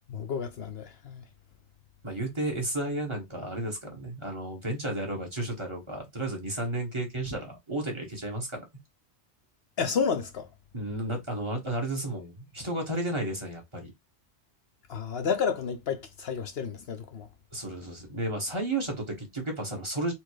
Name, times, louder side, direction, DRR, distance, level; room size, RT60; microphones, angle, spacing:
voice 1, 0.1-1.2 9.8-10.5 14.9-17.3, left 6 dB, 60° left, 0.9 m, -31 dB
voice 2, 2.0-8.7 10.7-13.9 17.5-20.1, right 1 dB, 25° right, 1.4 m, -33 dB
4.4 x 2.3 x 4.7 m
omnidirectional pair, 1.2 m